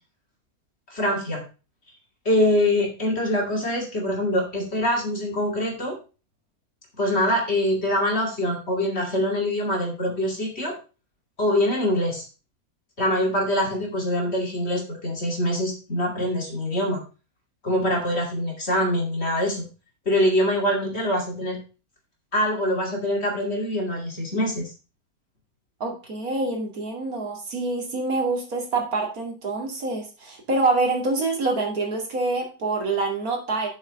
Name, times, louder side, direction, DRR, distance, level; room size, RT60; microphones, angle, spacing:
voice 1, 0.9-1.4 2.2-6.0 7.0-10.8 11.4-12.3 13.0-17.0 17.6-19.7 20.1-21.6 22.3-24.6, left 1 dB, 45° left, 0 dB, 2.7 m, -24 dB
voice 2, 25.8-33.7, right 3 dB, 70° right, 1 dB, 2.9 m, -26 dB
7.3 x 6.3 x 5.1 m, 0.33 s
omnidirectional pair, 1.6 m